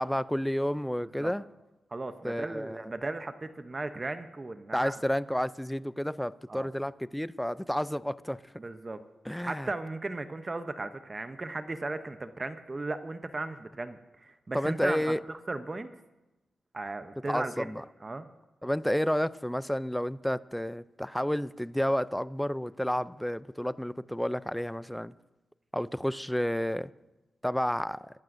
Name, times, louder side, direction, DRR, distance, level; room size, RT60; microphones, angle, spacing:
voice 1, 0.0-1.4 2.2-2.8 4.7-8.4 9.3-9.7 14.5-15.2 17.3-17.8 18.6-25.1 25.7-26.9 27.4-28.0, equal, 5° left, 17 dB, 0.4 m, -30 dB
voice 2, 1.9-5.0 6.5-6.7 8.6-9.0 9.5-15.9 16.7-17.7 18.0-18.3, right 2 dB, 30° right, 9 dB, 0.7 m, -36 dB
23.5 x 12.0 x 2.6 m, 1.0 s
cardioid pair, 90°, 0 cm